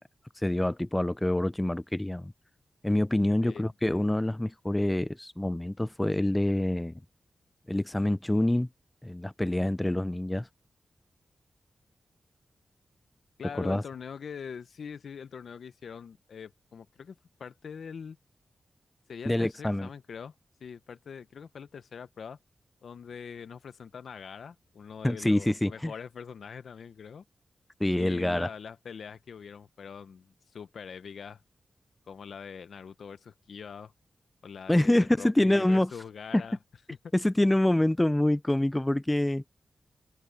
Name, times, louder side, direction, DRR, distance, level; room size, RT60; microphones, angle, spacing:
voice 1, 0.4-2.3 2.8-6.9 7.7-8.7 9.0-10.5 13.6-13.8 19.3-19.9 25.0-25.9 27.8-28.5 34.7-35.9 36.3-36.4 37.1-39.4, left 1 dB, 15° left, 0.5 m, -26 dB
voice 2, 13.4-18.2 19.1-20.3 20.6-22.4 22.8-27.2 27.9-31.4 32.1-33.9 34.4-36.6 37.0-37.1, left 6 dB, 80° left, 1.2 m, -43 dB
cardioid pair, 70°, 0 cm